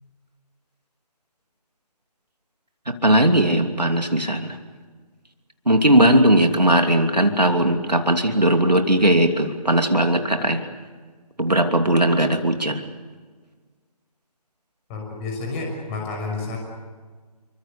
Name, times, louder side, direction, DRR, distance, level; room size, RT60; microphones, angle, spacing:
voice 1, 2.9-4.6 5.7-10.6 11.4-12.8, right 1 dB, 90° right, 5 dB, 2.9 m, -18 dB
voice 2, 14.9-16.6, left 3 dB, 20° left, 1 dB, 6.1 m, -30 dB
27.5 x 24.0 x 6.9 m, 1.5 s
figure-of-eight pair, 150°, 20 cm